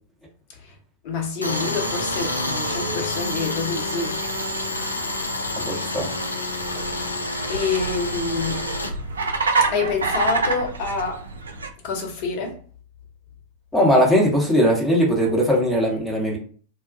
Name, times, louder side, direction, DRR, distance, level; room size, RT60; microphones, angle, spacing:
voice 1, 1.0-4.1 6.8-7.2 7.5-8.6 9.7-11.3 11.8-12.6, left 4 dB, 45° left, 0.7 m, -27 dB
Tools, 1.4-8.9, left 2 dB, 80° left, 0.3 m, -28 dB
sound 1, 1.5-11.7, right 3 dB, 70° right, 0.4 m, -30 dB
voice 2, 5.6-6.1 13.7-16.4, equal, 5° left, 0.9 m, -19 dB
2.3 x 2.1 x 2.5 m
figure-of-eight pair, 90°, 0 cm